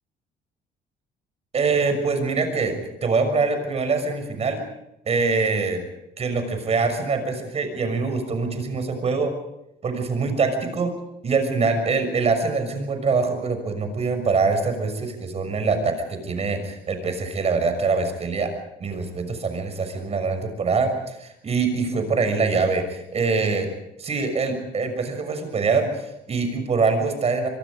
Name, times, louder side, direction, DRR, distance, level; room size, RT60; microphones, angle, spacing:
voice 1, 1.5-4.6 5.0-5.8 6.2-9.3 9.8-10.9 11.2-18.5 18.8-23.7 24.0-27.5, right 4 dB, 40° right, 7 dB, 6.4 m, -24 dB
25.5 x 23.0 x 5.2 m, 0.85 s
cardioid pair, 110°, 17 cm